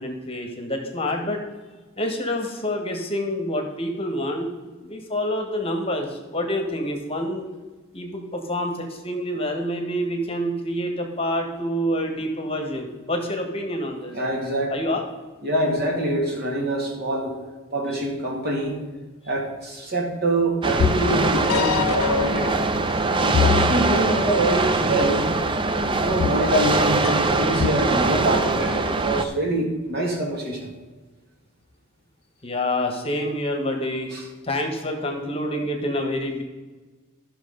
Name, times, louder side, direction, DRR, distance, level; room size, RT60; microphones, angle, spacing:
voice 1, 0.0-1.4 2.0-4.5 4.8-7.5 7.9-14.1 14.7-15.0 32.4-34.1 34.4-36.4, left 1 dB, 25° left, 3 dB, 1.3 m, -27 dB
voice 2, 14.1-14.7 15.4-17.4 17.7-18.8 19.3-22.6 23.2-25.3 26.0-30.7 34.1-34.2, right 1 dB, 50° right, 1 dB, 2.2 m, -25 dB
sound 1, 20.6-29.2, right 3 dB, 25° right, 0.5 m, -23 dB
sound 2, 20.7-29.0, left 8 dB, 70° left, 0.3 m, -28 dB
12.5 x 6.0 x 5.4 m, 1.3 s
head